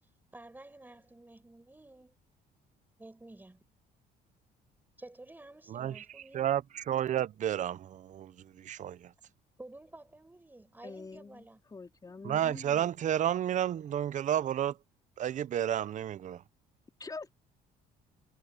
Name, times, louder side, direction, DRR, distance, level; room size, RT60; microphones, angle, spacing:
voice 1, 0.3-2.1 3.0-3.6 5.0-6.5 9.6-11.6, right 2 dB, 10° right, 7.6 m, -51 dB
voice 2, 5.7-6.0 6.3-8.3 8.6-9.1 12.2-14.7 15.2-16.4, right 10 dB, 45° right, 0.7 m, -31 dB
voice 3, 10.8-13.0 17.0-17.3, left 4 dB, 20° left, 4.3 m, -45 dB
cardioid pair, 110°, 17 cm